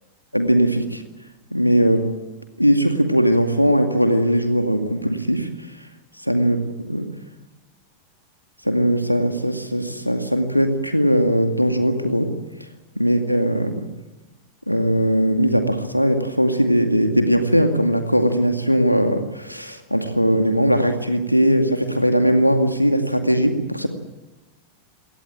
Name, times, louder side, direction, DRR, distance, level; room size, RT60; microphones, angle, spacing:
voice 1, 0.3-1.0 1.5-2.1 2.6-5.5 6.3-6.6 6.8-7.1 8.6-12.3 13.0-13.9 14.7-23.9, equal, 90° left, 6 dB, 2.2 m, -19 dB
22.5 x 18.0 x 9.0 m, 1.1 s
figure-of-eight pair, 90°, 0 cm